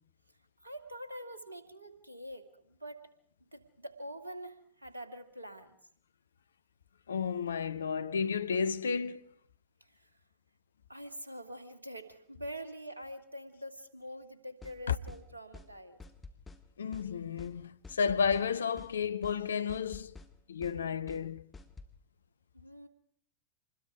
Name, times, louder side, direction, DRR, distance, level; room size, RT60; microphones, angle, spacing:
voice 1, 0.6-3.0 3.5-5.8 9.8-10.2 10.9-16.0 22.5-22.9, equal, 80° right, 1.9 m, -45 dB
voice 2, 7.1-9.3 14.9-15.0 16.8-20.1 20.5-21.4, left 6 dB, 70° left, 0.8 m, -32 dB
sound 1, 14.6-14.8 15.1-15.2 15.5-15.7 16.0-16.6 16.9-17.1 17.4-17.5 17.8-18.5 18.8-18.9 19.2-19.4 19.7-20.3 20.6-20.8 21.1-21.2 21.5-21.9, left 3 dB, 15° left, 1.9 m, -49 dB
26.5 x 21.0 x 4.8 m
figure-of-eight pair, 90°, 0 cm